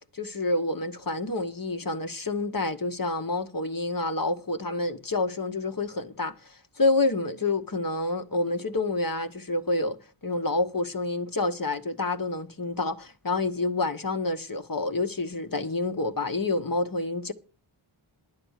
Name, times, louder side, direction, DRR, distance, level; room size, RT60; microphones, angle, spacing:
voice 1, 0.1-6.3 6.8-10.0 10.2-17.3, left 2 dB, 40° left, 1.4 m, -28 dB
10.5 x 8.7 x 6.5 m
cardioid pair, 40°, 50 cm